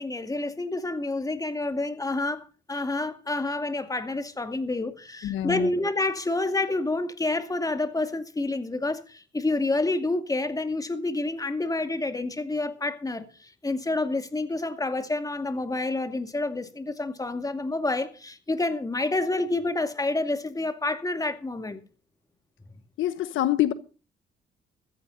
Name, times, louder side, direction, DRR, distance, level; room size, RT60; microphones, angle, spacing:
voice 1, 0.0-21.8, left 2 dB, 15° left, 2.3 m, -28 dB
voice 2, 5.2-5.7 23.0-23.7, left 13 dB, 80° left, 1.2 m, -25 dB
15.0 x 14.0 x 4.0 m
cardioid pair, 90°, 20 cm